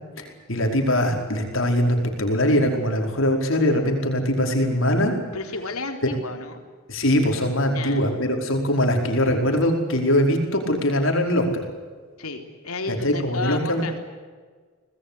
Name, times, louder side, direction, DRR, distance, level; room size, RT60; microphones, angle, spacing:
voice 1, 0.2-5.1 6.9-11.6 12.9-13.8, left 1 dB, 65° left, 3 dB, 5.0 m, -22 dB
voice 2, 5.3-6.6 7.6-8.1 12.2-14.0, left 3 dB, 90° left, 5 dB, 3.8 m, -32 dB
25.0 x 20.0 x 8.5 m, 1.5 s
head